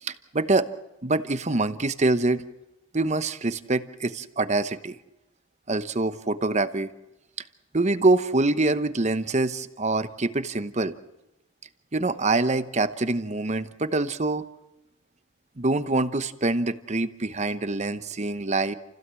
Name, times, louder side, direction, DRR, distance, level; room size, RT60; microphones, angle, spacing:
voice 1, 0.0-0.7 1.0-2.4 2.9-5.0 5.7-6.9 7.7-10.9 11.9-14.4 15.6-18.7, right 2 dB, 35° right, 12 dB, 0.9 m, -25 dB
29.0 x 16.0 x 7.6 m, 0.96 s
head